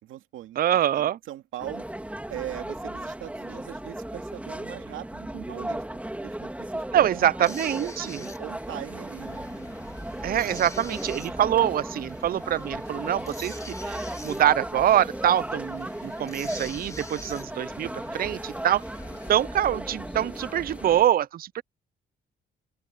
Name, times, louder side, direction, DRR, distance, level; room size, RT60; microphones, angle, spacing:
voice 1, 0.0-0.6 0.9-1.8 2.3-5.8 6.2-7.3 7.8-9.5, right 13 dB, 85° right, 2.5 m, -40 dB
voice 2, 0.6-1.2 6.9-8.2 10.2-18.8 19.3-21.6, right 11 dB, 50° right, 0.5 m, -25 dB
sound 1, 1.6-21.0, right 1 dB, 5° right, 3.2 m, -36 dB
sound 2, 7.4-19.4, left 2 dB, 15° left, 3.8 m, -47 dB
sound 3, 9.2-21.1, left 9 dB, 60° left, 2.6 m, -51 dB
open air
cardioid pair, 90°, 20 cm